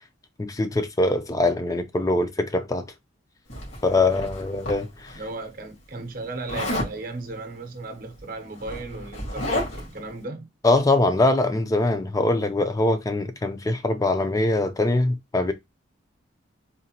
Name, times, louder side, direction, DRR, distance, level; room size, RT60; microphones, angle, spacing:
voice 1, 0.4-2.9 3.8-5.2 10.6-15.5, left 2 dB, 20° left, 0.4 m, -23 dB
Zipper (clothing), 3.5-5.2 6.5-7.0 8.1-8.2 8.5-10.0, left 1 dB, 85° left, 2.0 m, -31 dB
voice 2, 5.1-10.5, right 2 dB, 45° right, 0.7 m, -36 dB
3.9 x 2.1 x 2.8 m
head